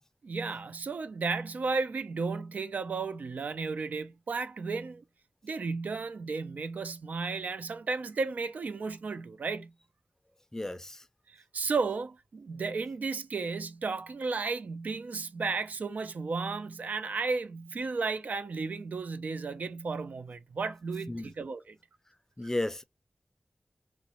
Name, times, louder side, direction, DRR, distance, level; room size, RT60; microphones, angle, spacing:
voice 1, 0.2-5.0 5.4-9.7 11.3-21.8, right 4 dB, 85° right, 0.4 m, -34 dB
voice 2, 10.5-11.0 21.1-21.3 22.4-22.8, left 2 dB, 15° left, 0.4 m, -33 dB
3.8 x 2.1 x 2.9 m
wide cardioid pair, 75°, 3 cm